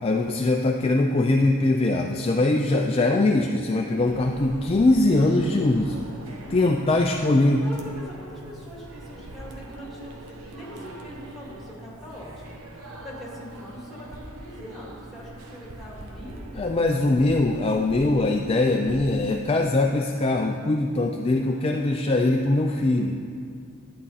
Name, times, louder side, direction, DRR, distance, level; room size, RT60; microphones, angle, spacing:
voice 1, 0.0-6.0 6.5-7.6 16.6-23.2, left 2 dB, 25° left, 2 dB, 0.4 m, -22 dB
sound 1, 3.9-19.0, right 1 dB, 80° right, 1.1 m, -42 dB
voice 2, 6.5-6.9 7.2-16.4 21.4-22.4, equal, ahead, -5 dB, 2.2 m, -43 dB
11.5 x 8.6 x 4.1 m, 2.2 s
head